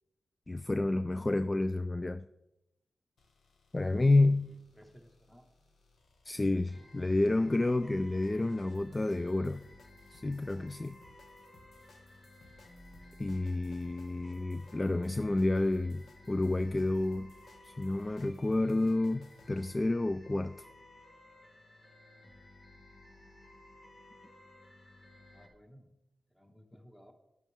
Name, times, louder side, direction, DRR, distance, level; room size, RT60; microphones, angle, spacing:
voice 1, 0.5-2.3 3.7-4.5 6.3-9.6 10.1-11.0 13.2-17.3 17.6-20.6, left 2 dB, 30° left, 13 dB, 0.3 m, -30 dB
sound 1, 3.2-19.9, left 3 dB, 80° left, 1.1 m, -63 dB
voice 2, 4.4-5.5 25.2-25.9 26.3-27.1, equal, 10° left, 3 dB, 1.8 m, -58 dB
sound 2, 6.7-25.5, left 1 dB, 60° left, 1.5 m, -56 dB
10.5 x 8.1 x 3.6 m, 0.91 s
cardioid pair, 55°, 0 cm